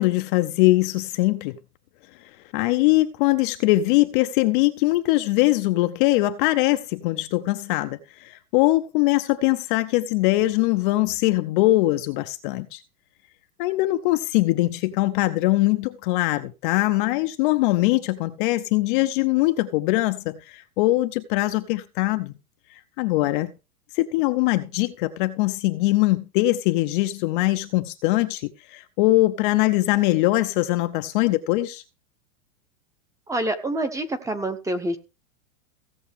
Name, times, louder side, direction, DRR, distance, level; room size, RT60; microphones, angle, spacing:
voice 1, 0.0-1.6 2.5-12.8 13.6-22.3 22.7-23.5 23.9-31.8, left 18 dB, 35° left, 0.6 m, -22 dB
voice 2, 33.3-35.0, right 1 dB, 5° right, 0.9 m, -27 dB
16.0 x 7.1 x 3.5 m
supercardioid pair, 150°, 45 cm